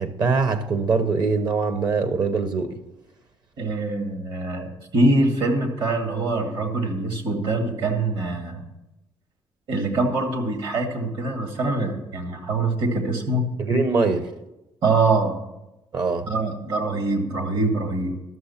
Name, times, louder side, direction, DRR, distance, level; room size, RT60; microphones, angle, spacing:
voice 1, 0.0-2.8 13.6-14.3 15.9-16.3, right 4 dB, 50° right, 0.9 m, -23 dB
voice 2, 3.6-8.6 9.7-13.4 14.8-15.4 16.3-18.2, right 2 dB, 65° right, 2.2 m, -24 dB
12.5 x 6.5 x 5.8 m
cardioid pair, 100°, 9 cm